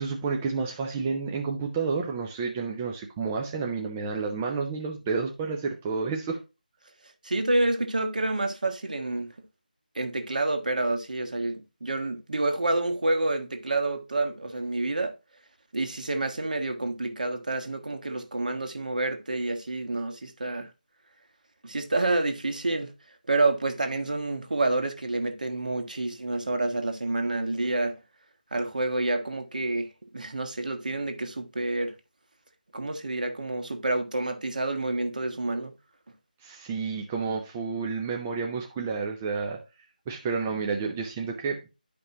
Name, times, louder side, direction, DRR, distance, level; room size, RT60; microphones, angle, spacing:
voice 1, 0.0-6.4 36.4-39.6 40.1-41.7, right 5 dB, 10° right, 0.3 m, -30 dB
voice 2, 7.2-9.3 9.9-15.1 15.7-20.7 21.6-22.9 23.3-27.9 28.5-29.9 30.1-31.9 32.7-35.7, right 2 dB, 60° right, 1.5 m, -28 dB
11.0 x 5.1 x 2.8 m
figure-of-eight pair, 170°, 5 cm